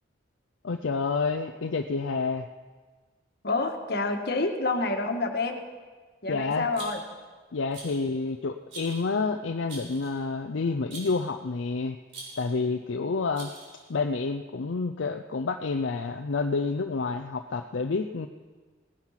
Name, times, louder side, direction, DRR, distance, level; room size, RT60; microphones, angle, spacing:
voice 1, 0.6-2.5 6.3-6.7 7.5-12.0 12.4-13.5 13.9-18.3, left 4 dB, 75° left, 6 dB, 0.6 m, -29 dB
voice 2, 3.4-5.6 6.2-7.0, left 3 dB, 55° left, 4 dB, 1.5 m, -28 dB
Rattle, 6.7-7.2 7.7-8.1 8.7-9.1 9.7-10.2 10.9-11.3 12.1-12.6 13.3-13.9, right 2 dB, 80° right, 4.7 m, -43 dB
18.0 x 10.5 x 5.8 m, 1.4 s
head